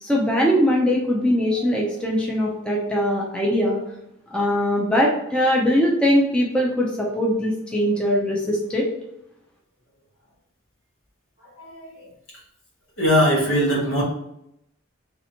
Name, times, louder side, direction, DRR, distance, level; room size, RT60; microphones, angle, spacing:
voice 1, 0.0-3.8 4.3-8.9, equal, 5° left, -3 dB, 0.5 m, -21 dB
voice 2, 11.6-12.1 13.0-14.0, equal, 80° left, -4 dB, 1.4 m, -21 dB
3.2 x 2.8 x 2.8 m, 0.79 s
head